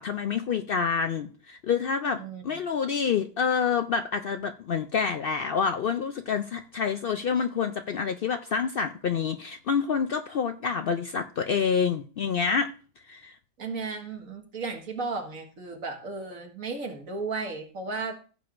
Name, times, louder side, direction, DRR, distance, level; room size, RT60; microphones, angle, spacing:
voice 1, 0.0-12.7 13.1-13.3, left 6 dB, 65° left, 8 dB, 0.6 m, -27 dB
voice 2, 2.2-2.6 13.6-18.1, right 4 dB, 80° right, 3 dB, 2.1 m, -34 dB
15.5 x 7.6 x 2.5 m, 0.39 s
omnidirectional pair, 1.4 m